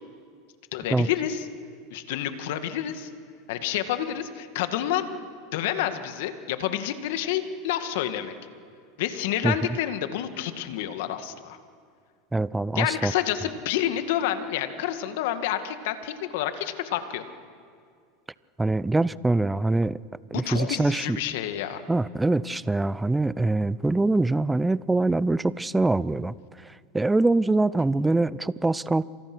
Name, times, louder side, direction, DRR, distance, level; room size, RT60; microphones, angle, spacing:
voice 1, 0.7-1.5 1.9-3.1 3.5-5.0 5.5-8.3 9.0-11.6 12.7-17.2 20.3-21.8, left 11 dB, 70° left, 8 dB, 2.0 m, -29 dB
voice 2, 12.3-13.1 18.6-20.0 20.3-21.2 21.9-29.1, right 2 dB, 10° right, 19 dB, 0.6 m, -24 dB
28.5 x 26.5 x 6.3 m, 2.1 s
hypercardioid pair, 110°, 0 cm